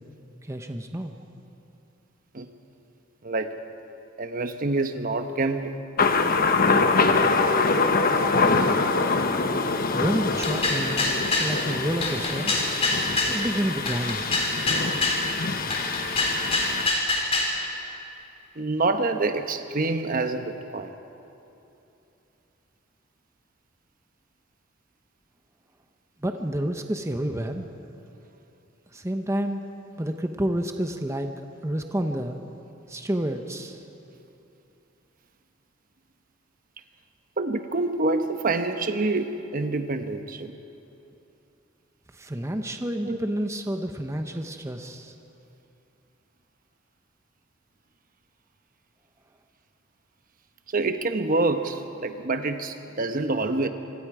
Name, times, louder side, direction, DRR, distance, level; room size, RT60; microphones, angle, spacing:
voice 1, 0.4-1.2 9.9-12.5 13.3-14.3 26.2-27.6 28.9-29.6 30.0-31.3 31.6-32.4 32.9-33.8 42.1-45.1, right 1 dB, 15° right, 5 dB, 0.9 m, -29 dB
voice 2, 4.2-5.8 18.6-20.9 37.4-40.5 43.1-43.2 50.7-53.7, right 3 dB, 45° right, 7 dB, 1.0 m, -26 dB
Thunder, 6.0-16.9, left 4 dB, 50° left, 1.1 m, -24 dB
sound 1, 10.4-11.5 12.0-13.4 13.9-15.2 15.7-17.5, left 2 dB, 30° left, 3.7 m, -25 dB
26.0 x 24.5 x 4.9 m, 2.9 s
head